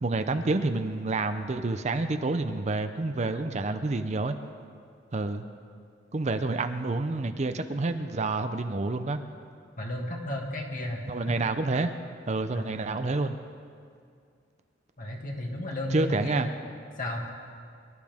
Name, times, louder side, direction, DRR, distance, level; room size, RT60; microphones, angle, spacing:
voice 1, 0.0-4.4 5.1-5.4 6.1-9.2 11.1-11.9 12.3-13.4 15.9-16.5, right 3 dB, 35° right, 8 dB, 0.6 m, -28 dB
voice 2, 9.8-11.0 11.3-11.4 12.5-12.8 15.0-16.5 17.0-17.3, left 1 dB, 45° left, 0 dB, 2.1 m, -33 dB
24.0 x 12.5 x 3.6 m, 2.2 s
head